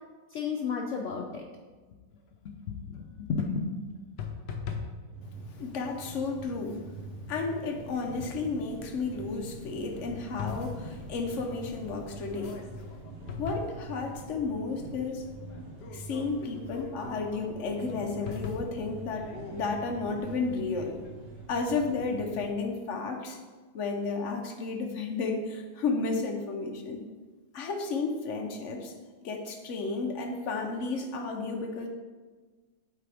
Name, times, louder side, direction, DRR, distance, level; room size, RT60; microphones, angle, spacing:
voice 1, 0.3-1.4 2.4-3.7, left 5 dB, 90° left, 0 dB, 0.6 m, -33 dB
sound 1, 2.2-2.3 2.5-3.3 3.9-6.0 6.4-6.7 7.1-7.2 7.7-8.6 9.1-9.3 9.6-11.9 12.2-21.7, left 6 dB, 70° left, 1.3 m, -43 dB
sound 2, 5.1-22.5, right 1 dB, 80° right, 0.5 m, -45 dB
voice 2, 5.5-6.9 7.3-12.6 13.4-15.3 15.9-21.0 21.5-23.4 23.7-27.0 27.5-28.9 29.2-31.9, left 4 dB, 55° left, 3 dB, 0.9 m, -32 dB
8.3 x 4.2 x 3.4 m, 1.4 s
omnidirectional pair, 2.0 m